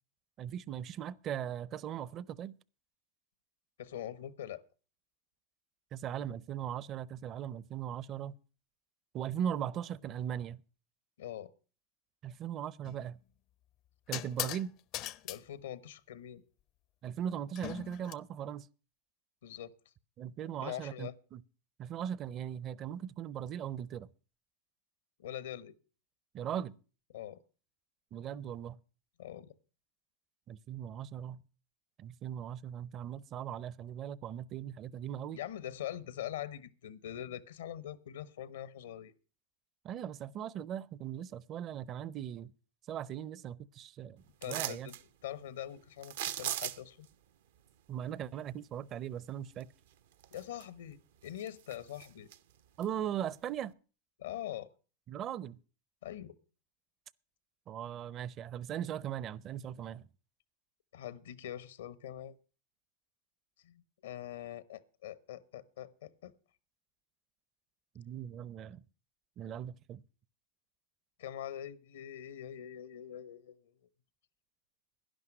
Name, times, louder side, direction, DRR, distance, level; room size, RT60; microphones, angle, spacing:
voice 1, 0.4-2.5 5.9-8.3 9.1-10.6 12.2-13.2 14.1-14.7 17.0-18.7 20.2-21.4 21.8-24.1 26.3-26.8 28.1-28.8 30.5-31.4 32.0-35.4 39.8-42.5 42.9-44.9 47.9-49.7 52.8-53.7 55.1-55.6 57.7-60.1 67.9-68.8 69.4-70.0, right 9 dB, 40° right, 0.6 m, -39 dB
voice 2, 3.8-4.6 11.2-11.5 15.2-16.4 19.4-19.7 20.6-21.1 25.2-25.7 27.1-27.4 29.2-29.5 35.3-39.1 44.4-44.9 45.2-47.1 50.3-52.3 54.2-54.7 56.0-56.4 60.9-62.4 63.6-66.3 71.2-73.7, left 11 dB, 80° left, 0.9 m, -43 dB
sound 1, 12.8-13.1 14.1-14.7 14.9-15.4 17.6-18.1, left 14 dB, 50° left, 0.5 m, -39 dB
sound 2, 44.4-45.0 46.0-47.0 49.6-49.7 50.2-50.9 51.2-52.4 52.8-52.9, right 12 dB, 75° right, 0.7 m, -38 dB
11.5 x 11.0 x 6.0 m
hypercardioid pair, 105°, 0 cm